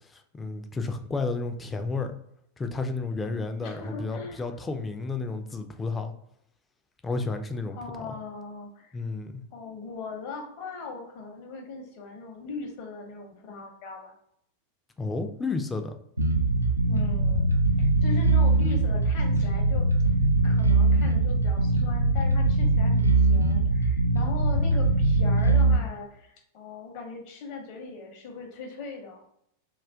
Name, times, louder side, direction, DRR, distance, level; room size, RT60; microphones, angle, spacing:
voice 1, 0.1-2.1 2.6-6.1 7.0-7.8 8.1-8.2 8.9-9.4 15.0-15.9, left 3 dB, 15° left, 6 dB, 0.3 m, -31 dB
voice 2, 3.6-4.4 7.7-9.0 9.5-14.1 16.9-17.5 17.8-19.9 20.4-29.3, left 4 dB, 45° left, 2 dB, 0.7 m, -39 dB
Bass guitar, 16.2-25.8, right 2 dB, 85° right, 0.3 m, -22 dB
2.4 x 2.3 x 3.3 m, 0.72 s
figure-of-eight pair, 90°, 0 cm